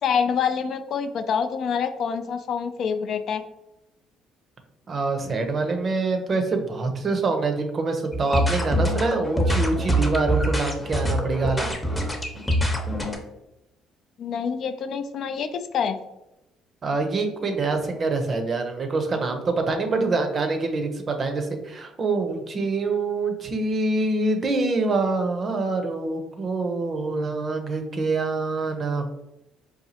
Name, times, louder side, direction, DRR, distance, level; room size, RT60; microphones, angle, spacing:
voice 1, 0.0-3.4 14.2-16.0, left 6 dB, 60° left, 9 dB, 0.3 m, -26 dB
voice 2, 4.9-11.7 16.8-29.1, right 3 dB, 40° right, 5 dB, 0.6 m, -25 dB
sound 1, 8.1-13.2, equal, 15° left, 0.7 m, -24 dB
4.0 x 2.4 x 2.7 m, 0.91 s
supercardioid pair, 85°, 0 cm